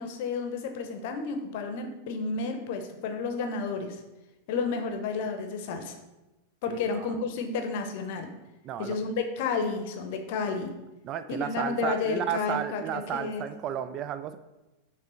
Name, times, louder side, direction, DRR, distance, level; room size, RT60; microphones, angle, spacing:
voice 1, 0.0-4.0 4.5-6.0 6.6-8.3 8.8-10.7 11.3-13.5, left 4 dB, 50° left, 6 dB, 0.7 m, -31 dB
voice 2, 6.7-7.1 8.6-8.9 11.0-14.4, right 10 dB, 35° right, 11 dB, 0.3 m, -33 dB
6.7 x 3.3 x 4.3 m, 1.0 s
figure-of-eight pair, 90°, 0 cm